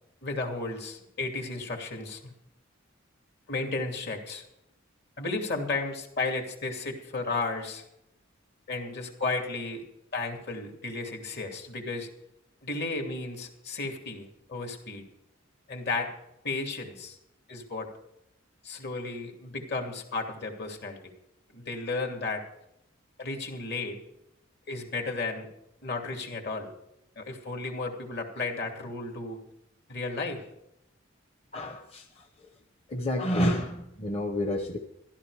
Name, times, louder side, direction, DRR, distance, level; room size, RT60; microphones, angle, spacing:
voice 1, 0.2-2.3 3.5-4.4 5.2-7.8 8.7-9.8 10.1-12.1 12.6-15.0 15.7-16.1 16.4-17.2 17.5-17.9 18.6-21.0 21.5-22.4 23.2-24.0 24.7-25.5 25.8-26.7 27.2-29.4 29.9-30.4, left 3 dB, 55° left, 3 dB, 2.6 m, -33 dB
voice 2, 31.5-32.5 32.9-34.8, equal, 30° left, 4 dB, 1.0 m, -30 dB
14.5 x 12.0 x 4.9 m, 0.81 s
head